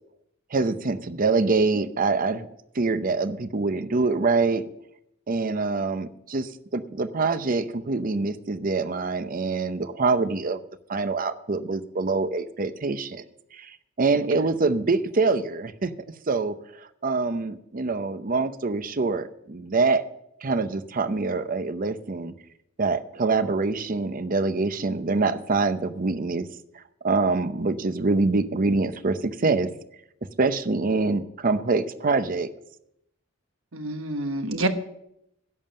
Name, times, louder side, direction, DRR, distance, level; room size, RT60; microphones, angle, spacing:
voice 1, 0.5-2.5 2.7-4.6 5.3-10.6 10.9-13.2 13.5-15.9 16.3-20.0 20.4-22.3 22.8-26.5 26.7-29.7 30.4-32.5, right 3 dB, 40° right, 12 dB, 0.7 m, -25 dB
voice 2, 33.7-34.7, right 2 dB, 65° right, 7 dB, 1.2 m, -27 dB
11.0 x 7.1 x 7.6 m, 0.78 s
head